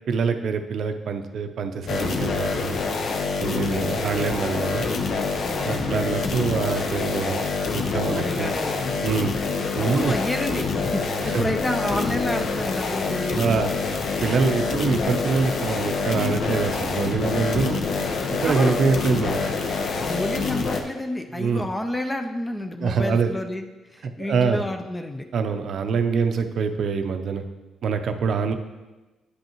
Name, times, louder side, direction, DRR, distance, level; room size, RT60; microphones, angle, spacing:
voice 1, 0.1-2.8 3.4-4.9 5.6-8.5 9.0-9.3 9.7-10.1 11.3-11.5 13.3-13.7 14.2-17.8 18.4-19.4 21.3-21.6 22.8-23.3 24.0-24.6 25.3-27.4 27.8-28.5, right 5 dB, 65° right, 7 dB, 0.5 m, -25 dB
sound 1, 1.9-20.8, left 4 dB, 60° left, 0.7 m, -26 dB
voice 2, 3.4-4.2 5.4-5.9 7.9-9.0 9.8-13.5 18.4-18.7 19.9-23.6 23.9-25.3, left 1 dB, 15° left, 6 dB, 0.5 m, -30 dB
9.8 x 5.4 x 3.0 m, 1.2 s
cardioid pair, 90°, 0 cm